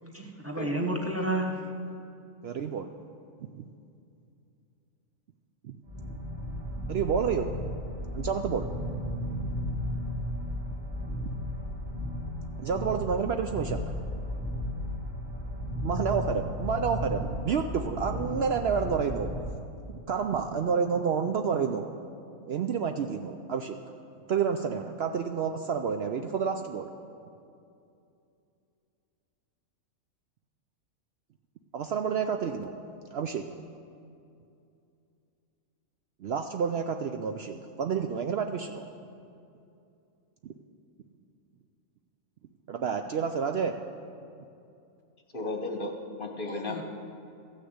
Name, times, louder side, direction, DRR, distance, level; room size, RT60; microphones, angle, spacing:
voice 1, 0.0-1.7 46.6-46.8, right 1 dB, 10° right, 0 dB, 0.9 m, -31 dB
voice 2, 2.4-2.9 3.6-3.7 6.9-7.5 8.1-8.7 12.6-13.8 15.8-19.3 19.9-21.9 22.4-23.8 24.3-26.9 31.7-32.7 33.1-33.5 36.2-38.9 40.4-40.5 42.7-43.7, right 6 dB, 60° right, 6 dB, 0.7 m, -29 dB
sound 1, 5.8-19.5, equal, 35° right, 2.3 m, -34 dB
voice 3, 45.3-46.8, left 2 dB, 45° left, 3 dB, 1.1 m, -34 dB
14.5 x 6.5 x 7.9 m, 2.6 s
omnidirectional pair, 1.4 m